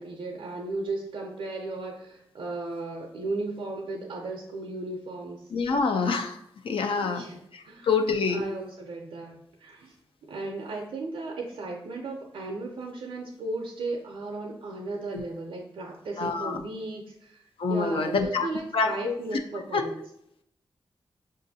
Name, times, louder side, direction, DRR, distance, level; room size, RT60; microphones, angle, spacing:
voice 1, 0.0-5.5 7.0-7.4 7.7-7.9 8.3-9.9 10.3-20.0, right 2 dB, 85° right, 0 dB, 0.5 m, -35 dB
voice 2, 5.5-6.4 6.6-7.2 7.5-8.4 15.1-15.2 16.2-16.6 17.6-18.5 18.7-19.1 19.7-19.8, left 4 dB, 75° left, 5 dB, 0.5 m, -26 dB
5.5 x 2.5 x 2.7 m, 0.75 s
cardioid pair, 45°, 9 cm